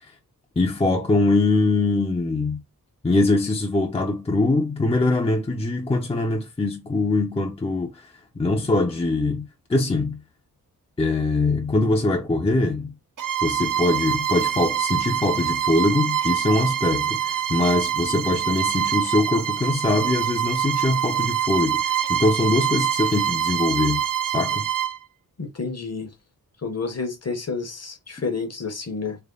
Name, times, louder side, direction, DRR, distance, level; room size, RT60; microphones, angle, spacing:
voice 1, 0.6-2.6 3.0-8.0 8.4-10.2 11.0-12.9 13.4-24.0 24.3-24.7, left 2 dB, 15° left, 0.6 m, -22 dB
Bowed string instrument, 13.2-25.0, right 10 dB, 60° right, 0.5 m, -25 dB
voice 2, 25.4-26.1 26.6-29.2, left 4 dB, 40° left, 0.9 m, -30 dB
3.4 x 2.1 x 3.8 m
wide cardioid pair, 130°, 37 cm